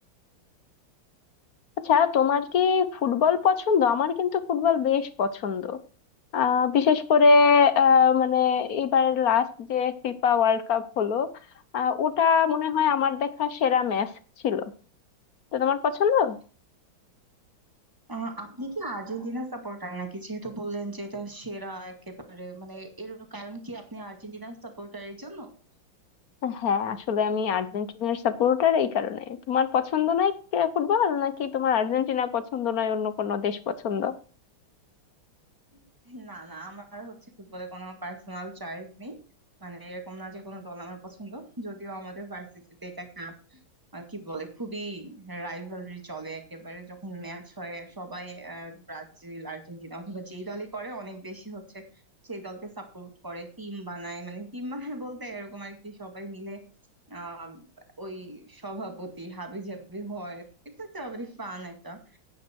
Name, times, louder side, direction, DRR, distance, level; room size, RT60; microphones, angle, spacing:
voice 1, 1.8-5.8 6.3-11.3 11.7-14.1 14.4-14.7 15.5-16.4 26.4-34.1, left 7 dB, 55° left, 13 dB, 1.1 m, -23 dB
voice 2, 18.1-25.5 35.7-39.2 39.6-43.6 43.9-51.8 52.2-56.6 57.1-57.7 58.0-60.5 60.8-62.2, right 2 dB, 10° right, 5 dB, 1.9 m, -38 dB
10.5 x 9.3 x 4.5 m, 0.38 s
omnidirectional pair, 2.3 m